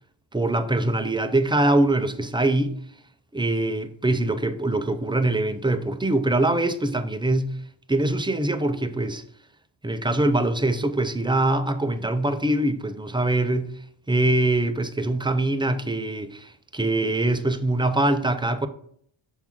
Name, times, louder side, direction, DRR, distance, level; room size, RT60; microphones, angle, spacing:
voice 1, 0.3-2.7 3.3-7.5 7.9-9.2 9.8-13.7 14.1-18.7, right 2 dB, 10° right, 0.3 m, -23 dB
7.2 x 5.9 x 3.5 m
wide cardioid pair, 170°, 49 cm